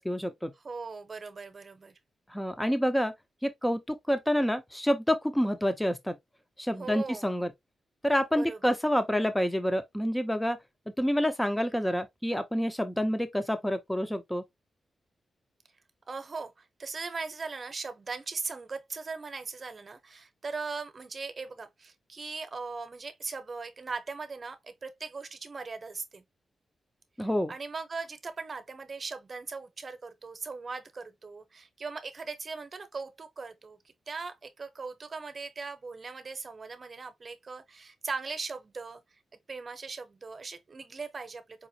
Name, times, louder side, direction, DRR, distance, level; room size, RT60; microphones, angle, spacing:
voice 1, 0.0-0.5 2.3-3.1 3.4-6.2 6.6-7.5 8.0-10.6 11.0-14.4 27.2-27.5, equal, 5° left, 0.5 m, -28 dB
voice 2, 0.6-1.9 6.8-7.3 8.3-8.8 16.1-26.2 27.2-39.0 39.3-41.7, right 4 dB, 35° right, 0.8 m, -39 dB
4.9 x 2.5 x 2.7 m
wide cardioid pair, 125°, 0 cm